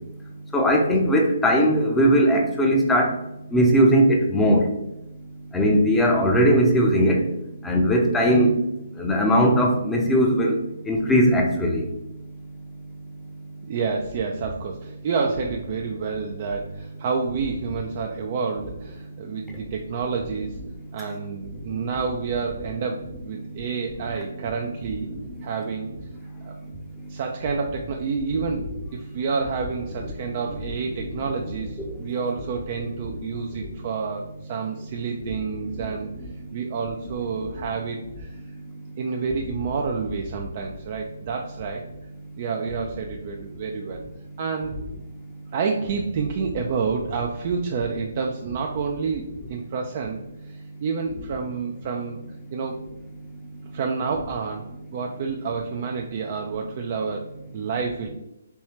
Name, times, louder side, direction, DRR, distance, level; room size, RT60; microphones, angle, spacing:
voice 1, 0.5-3.1 3.5-4.6 5.5-7.2 7.6-8.5 9.0-10.5 10.9-11.9, equal, 5° left, 0 dB, 0.6 m, -19 dB
voice 2, 13.6-20.6 20.9-25.1 25.4-25.9 26.4-26.7 27.1-28.6 28.9-36.1 36.5-38.4 39.0-41.9 42.4-44.0 44.4-44.8 45.5-50.2 50.4-52.2 52.5-52.8 53.7-58.1, right 5 dB, 35° right, 2 dB, 0.4 m, -29 dB
4.5 x 3.1 x 3.0 m, 0.87 s
figure-of-eight pair, 135°, 0 cm